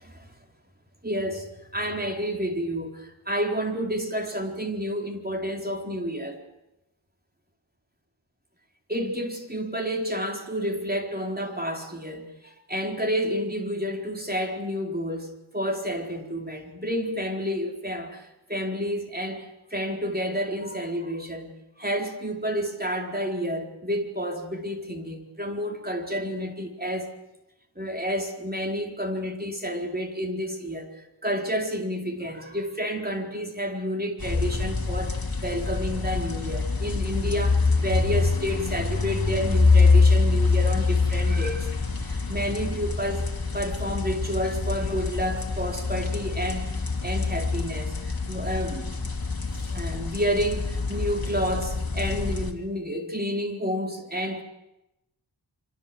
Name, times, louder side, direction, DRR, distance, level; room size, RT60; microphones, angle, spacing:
voice 1, 1.0-1.5 1.7-6.4 8.9-27.1 27.8-41.7 42.0-43.3 43.5-49.1 49.5-54.4, equal, 20° right, 4.2 m, -30 dB
sound 1, 34.2-52.5, left 4 dB, 50° left, 2.7 m, -25 dB
26.5 x 24.5 x 7.9 m
wide cardioid pair, 70°, 47 cm